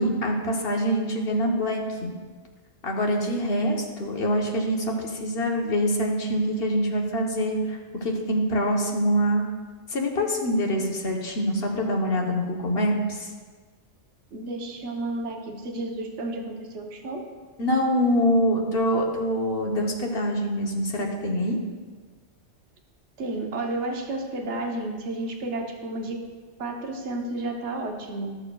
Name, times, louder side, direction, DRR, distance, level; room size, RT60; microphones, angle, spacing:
voice 1, 0.0-2.1 2.8-9.5 9.9-13.3 17.6-21.6, equal, 55° left, 1 dB, 1.2 m, -25 dB
voice 2, 14.3-17.2 23.2-26.2 26.6-28.4, right 2 dB, 75° right, 2 dB, 1.2 m, -32 dB
14.0 x 6.7 x 2.3 m, 1.5 s
omnidirectional pair, 1.2 m